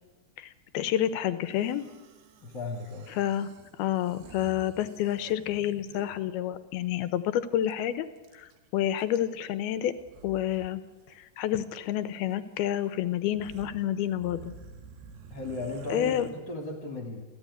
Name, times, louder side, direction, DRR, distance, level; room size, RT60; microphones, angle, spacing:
voice 1, 0.4-1.9 3.1-3.5 3.8-8.1 8.3-10.0 10.2-10.8 11.2-14.5 15.9-16.3, left 11 dB, 85° left, 12 dB, 3.0 m, -29 dB
sound 1, 1.5-6.2 7.6-7.7 8.0-8.6 9.0-9.5 10.0-10.7 11.0-11.2 12.3-12.4 12.9-13.0 13.2-16.3, right 6 dB, 80° right, 3.7 m, -50 dB
voice 2, 2.4-3.1 15.3-17.3, left 2 dB, 35° left, 2 dB, 2.5 m, -36 dB
28.0 x 16.5 x 9.7 m, 1.2 s
omnidirectional pair, 4.5 m